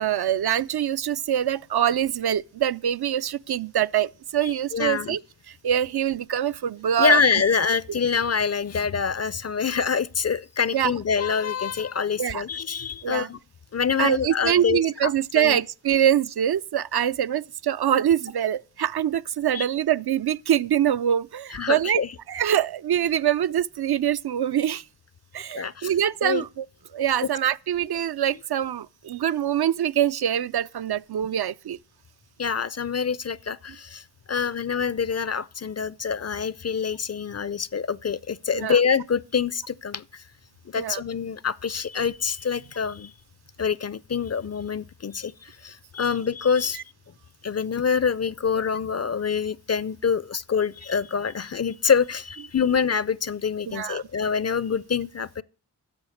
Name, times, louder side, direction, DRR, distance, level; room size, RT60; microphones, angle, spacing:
voice 1, 0.0-5.2 5.5-7.2 10.7-10.9 12.2-12.4 13.0-13.3 14.0-22.0 22.3-24.8 25.3-26.7 26.9-31.8 38.5-38.8 40.8-41.0 46.7-46.8 53.7-54.0, right 10 dB, 65° right, 0.5 m, -24 dB
voice 2, 4.4-5.2 7.0-13.4 13.7-15.6 19.5-19.7 21.5-22.1 25.5-25.9 26.2-26.4 32.4-34.0 34.3-40.2 40.7-43.1 43.6-46.8 47.4-55.4, left 6 dB, 40° left, 0.5 m, -26 dB
10.5 x 6.9 x 7.8 m
cardioid pair, 45°, 42 cm